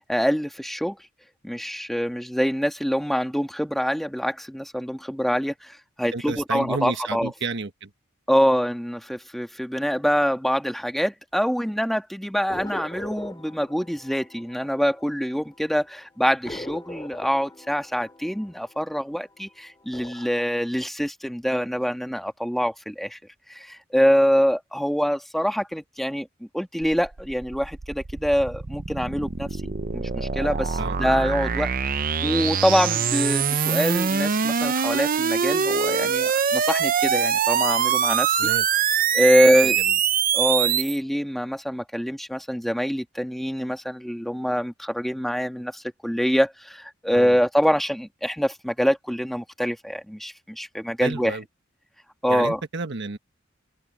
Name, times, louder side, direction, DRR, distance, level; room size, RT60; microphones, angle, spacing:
voice 1, 0.1-1.0 1.4-7.3 8.3-23.2 23.5-26.3 26.5-31.7 32.2-38.4 39.1-39.8 40.3-51.4 52.2-52.6, equal, ahead, 2.4 m, -25 dB
voice 2, 6.1-7.9 30.8-31.0 38.4-38.7 39.9-40.0 47.1-47.4 51.0-51.4 52.3-53.2, right 3 dB, 60° right, 1.2 m, -31 dB
sound 1, 12.5-15.6 15.8-15.9 16.5-19.4 19.8-20.4, left 1 dB, 20° left, 3.5 m, -40 dB
sound 2, 26.8-41.0, right 7 dB, 45° right, 0.6 m, -24 dB
head